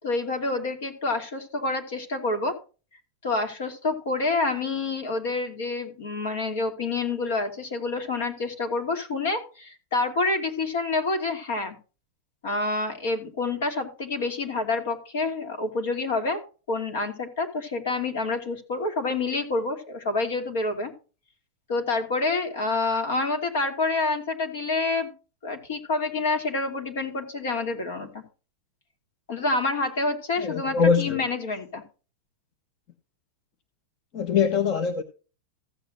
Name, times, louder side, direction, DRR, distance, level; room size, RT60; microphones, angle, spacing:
voice 1, 0.0-2.6 3.2-11.8 12.4-16.4 16.7-20.9 21.7-25.1 25.4-28.2 29.3-31.8, left 3 dB, 60° left, 2.6 m, -28 dB
voice 2, 30.4-31.2 34.1-35.0, left 6 dB, 30° left, 0.8 m, -23 dB
15.0 x 8.2 x 2.5 m
supercardioid pair, 180°, 0 cm